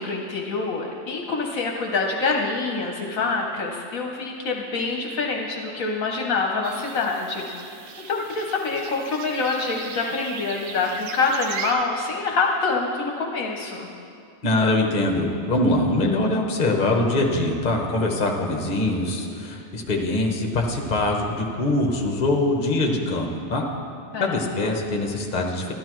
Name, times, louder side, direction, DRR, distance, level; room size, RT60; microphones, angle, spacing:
voice 1, 0.0-7.5 8.1-13.9 24.1-24.7, left 3 dB, 65° left, 1 dB, 1.2 m, -26 dB
sound 1, 6.6-11.7, right 5 dB, 70° right, 1.1 m, -38 dB
voice 2, 14.4-23.6 24.2-25.7, left 2 dB, 35° left, 1 dB, 1.0 m, -23 dB
12.5 x 12.0 x 3.1 m, 2.5 s
omnidirectional pair, 1.6 m